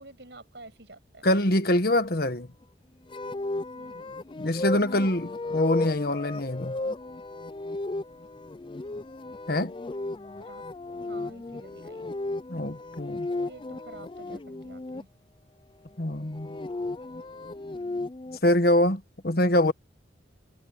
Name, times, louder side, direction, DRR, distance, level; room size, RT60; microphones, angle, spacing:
voice 1, 0.0-1.3 3.8-4.1 9.9-10.1 10.4-10.6 10.9-12.1 13.3-15.1 17.0-17.1, right 2 dB, 70° right, 7.5 m, -49 dB
voice 2, 1.2-2.5 4.4-6.8 9.5-9.7 12.5-13.3 16.0-16.6 18.4-19.7, left 1 dB, 55° left, 1.5 m, -24 dB
sound 1, 3.1-15.0 16.2-18.4, left 2 dB, 25° left, 0.4 m, -35 dB
head